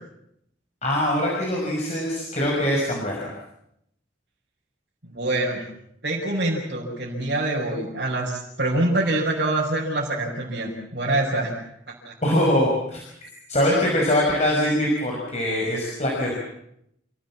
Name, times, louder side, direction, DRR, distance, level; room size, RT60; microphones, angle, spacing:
voice 1, 0.8-3.3 12.2-13.0 13.5-16.3, left 1 dB, 35° left, -2 dB, 5.8 m, -23 dB
voice 2, 5.0-5.6 6.0-11.5 12.0-12.1, right 2 dB, 55° right, -6 dB, 6.0 m, -25 dB
29.0 x 17.0 x 7.5 m, 0.77 s
head